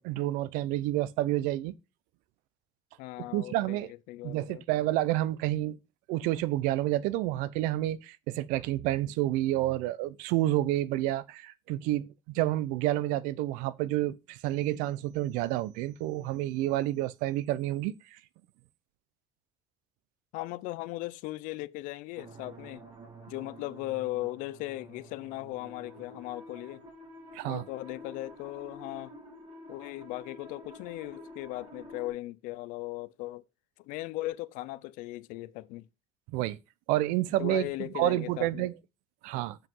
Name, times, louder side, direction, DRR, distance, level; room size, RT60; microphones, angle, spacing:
voice 1, 0.0-1.8 3.3-3.9 4.2-5.8 6.1-12.1 12.3-17.9 27.3-27.6 36.3-36.6 36.9-38.7 39.2-39.6, right 15 dB, 90° right, 0.7 m, -29 dB
voice 2, 3.0-4.6 20.3-22.8 23.3-26.8 27.5-29.1 29.7-33.4 33.8-35.9 37.4-38.7, left 18 dB, 80° left, 0.6 m, -38 dB
sound 1, 22.1-32.1, right 1 dB, 45° right, 4.8 m, -49 dB
7.6 x 5.6 x 5.4 m
cardioid pair, 110°, 13 cm